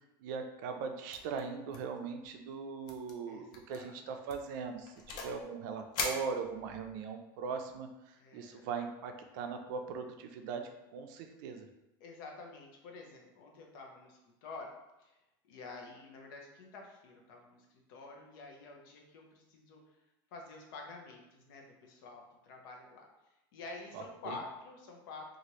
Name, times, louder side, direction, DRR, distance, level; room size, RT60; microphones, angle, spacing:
voice 1, 0.2-7.9 8.3-11.7 23.9-24.4, right 5 dB, 65° right, 6 dB, 0.4 m, -40 dB
sound 1, 1.1-1.4 1.7-2.3 2.9-3.1 3.5-3.8 4.3-5.4 5.9-6.9, left 4 dB, 40° left, 0.4 m, -40 dB
voice 2, 3.3-4.0 8.2-8.7 12.0-14.7 15.0-15.1 15.5-19.8 20.3-23.1 23.5-25.4, left 3 dB, 80° left, 1 dB, 0.7 m, -49 dB
3.0 x 2.4 x 2.8 m, 0.94 s
cardioid pair, 170°, 11 cm